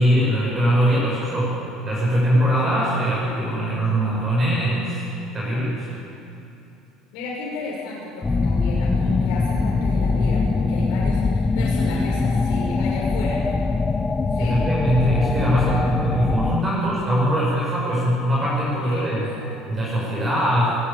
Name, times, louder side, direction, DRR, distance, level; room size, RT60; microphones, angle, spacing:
voice 1, 0.0-1.6 1.8-5.9 14.4-19.3 19.7-20.8, equal, 20° right, -6 dB, 6.5 m, -21 dB
voice 2, 7.1-13.6 14.3-14.6 18.8-19.5, left 3 dB, 70° left, -5 dB, 6.2 m, -33 dB
sound 1, 8.2-16.6, left 3 dB, 15° left, 0.6 m, -22 dB
20.0 x 19.5 x 8.8 m, 2.8 s
cardioid pair, 150°, 0 cm